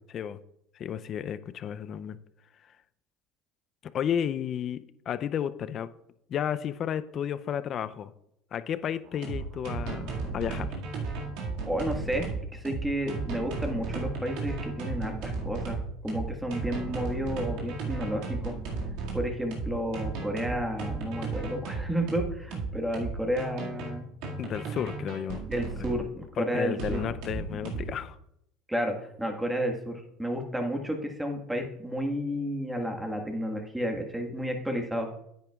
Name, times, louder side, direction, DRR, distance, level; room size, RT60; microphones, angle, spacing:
voice 1, 0.1-0.4 0.8-2.2 3.8-5.9 6.3-8.1 8.5-10.7 24.4-25.4 26.4-28.2, left 9 dB, 45° left, 14 dB, 0.5 m, -32 dB
sound 1, 9.1-26.1 26.8-28.0, right 4 dB, 70° right, 2.1 m, -34 dB
voice 2, 11.7-18.5 19.1-24.0 25.5-27.0 28.7-35.1, equal, 5° right, 3 dB, 1.6 m, -31 dB
9.9 x 9.2 x 2.4 m, 0.78 s
hypercardioid pair, 85°, 0 cm